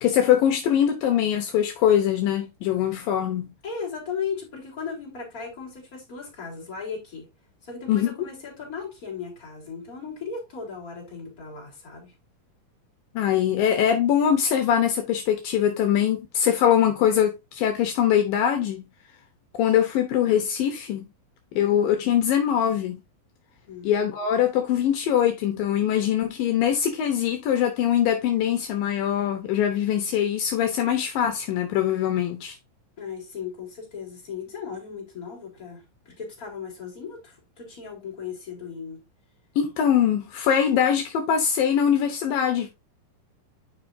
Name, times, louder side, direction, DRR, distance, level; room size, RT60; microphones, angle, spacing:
voice 1, 0.0-3.5 7.9-8.1 13.2-18.9 19.6-21.1 21.5-23.0 23.8-32.6 39.6-42.7, left 9 dB, 75° left, 2.6 m, -22 dB
voice 2, 3.6-7.3 7.6-12.1 23.6-23.9 33.0-39.0, left 6 dB, 25° left, 4.0 m, -36 dB
10.5 x 5.2 x 2.7 m
omnidirectional pair, 4.2 m